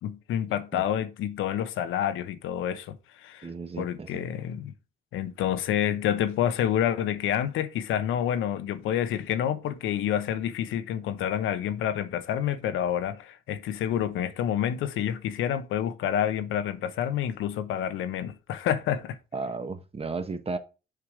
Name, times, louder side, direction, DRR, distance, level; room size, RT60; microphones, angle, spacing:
voice 1, 0.0-3.5 3.8-4.7 5.1-19.2, left 10 dB, 85° left, 0.9 m, -28 dB
voice 2, 3.4-4.2 19.3-20.6, right 4 dB, 30° right, 1.2 m, -34 dB
6.7 x 4.8 x 4.8 m
cardioid pair, 90°, 20 cm